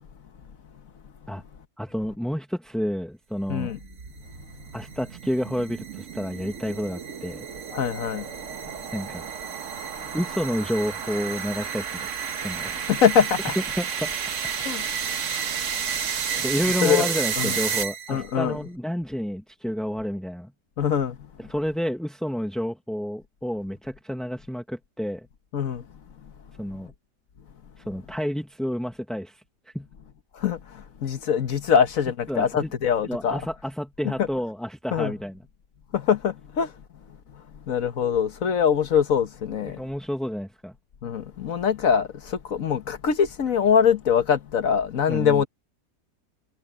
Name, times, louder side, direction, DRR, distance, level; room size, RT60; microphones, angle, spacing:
voice 1, 1.8-3.7 4.7-7.5 8.9-9.2 10.1-12.1 12.4-12.7 13.8-14.1 16.4-20.5 21.4-25.3 26.6-26.9 27.8-29.4 29.7-29.9 32.3-32.7 33.1-35.4 39.6-40.7 45.1-45.4, equal, ahead, 0.9 m, -30 dB
voice 2, 3.5-3.8 7.7-8.3 8.6-8.7 12.9-13.5 14.6-14.9 15.3-15.5 16.3-16.4 16.8-17.1 17.4-17.6 18.1-18.6 20.8-21.3 25.5-25.8 26.2-26.3 30.3-33.4 34.0-34.3 34.9-35.1 35.9-36.7 37.7-39.8 41.0-45.5, left 7 dB, 55° left, 1.5 m, -23 dB
sound 1, 3.5-18.3, right 7 dB, 55° right, 1.3 m, -31 dB
omnidirectional pair, 1.8 m